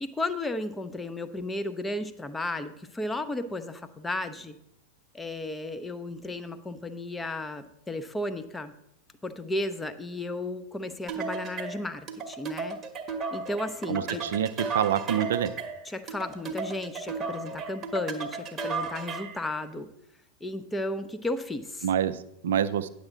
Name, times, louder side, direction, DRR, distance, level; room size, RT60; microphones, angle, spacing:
voice 1, 0.0-4.6 5.1-8.7 9.2-12.8 13.3-14.2 15.9-19.9 20.4-21.9, left 2 dB, 10° left, 9 dB, 0.6 m, -34 dB
sound 1, 11.1-19.4, right 4 dB, 25° right, 1.0 m, -34 dB
voice 2, 13.9-15.5 21.8-22.9, right 9 dB, 60° right, 13 dB, 0.4 m, -27 dB
9.6 x 7.3 x 3.7 m, 0.79 s
figure-of-eight pair, 90°, 0 cm